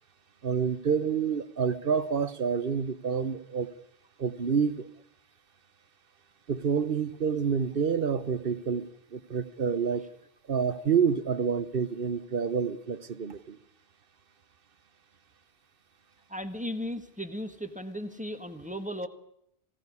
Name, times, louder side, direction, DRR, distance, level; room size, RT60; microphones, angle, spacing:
voice 1, 0.4-3.7 4.2-4.9 6.5-10.1 10.5-13.6, right 6 dB, 60° right, 1.2 m, -28 dB
voice 2, 16.3-19.1, equal, 5° right, 1.5 m, -36 dB
20.5 x 17.0 x 9.7 m
omnidirectional pair, 1.1 m